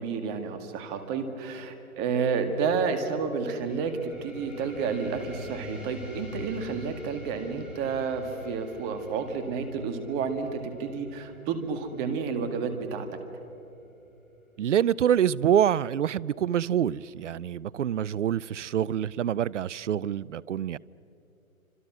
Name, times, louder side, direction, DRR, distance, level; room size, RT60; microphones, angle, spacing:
voice 1, 0.0-13.1, right 5 dB, 20° right, 8 dB, 2.0 m, -30 dB
sound 1, 3.6-14.7, left 2 dB, ahead, 7.5 m, -46 dB
voice 2, 14.6-20.8, right 10 dB, 55° right, 24 dB, 0.5 m, -26 dB
27.5 x 26.0 x 6.2 m, 2.9 s
figure-of-eight pair, 135°, 43 cm